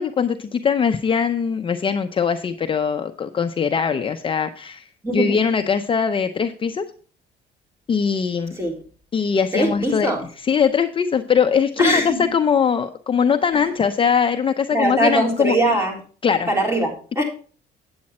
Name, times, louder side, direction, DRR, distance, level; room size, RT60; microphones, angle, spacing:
voice 1, 0.0-4.8 5.1-6.8 7.9-8.6 9.1-10.1 10.5-15.5 16.2-16.5, left 6 dB, 30° left, 0.7 m, -21 dB
voice 2, 5.0-5.4 8.5-8.8 9.5-10.3 11.8-12.3 14.7-16.0 16.5-17.2, right 1 dB, 15° right, 3.6 m, -21 dB
8.8 x 8.4 x 4.2 m
cardioid pair, 110°, 17 cm